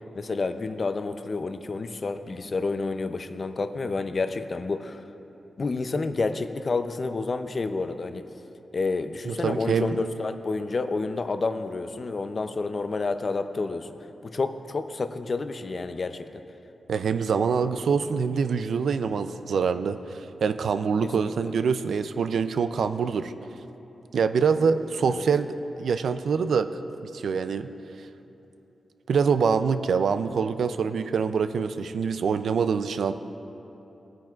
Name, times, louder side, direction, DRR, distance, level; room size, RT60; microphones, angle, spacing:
voice 1, 0.1-5.0 5.6-8.2 8.7-13.9 14.2-16.3 21.2-21.3 25.1-25.2, left 3 dB, 45° left, 9 dB, 0.5 m, -29 dB
voice 2, 9.3-10.0 16.9-23.3 24.1-25.5 25.8-26.7 27.0-27.7 29.1-33.1, right 6 dB, 80° right, 11 dB, 0.4 m, -25 dB
18.0 x 8.9 x 2.4 m, 3.0 s
wide cardioid pair, 110°, 0 cm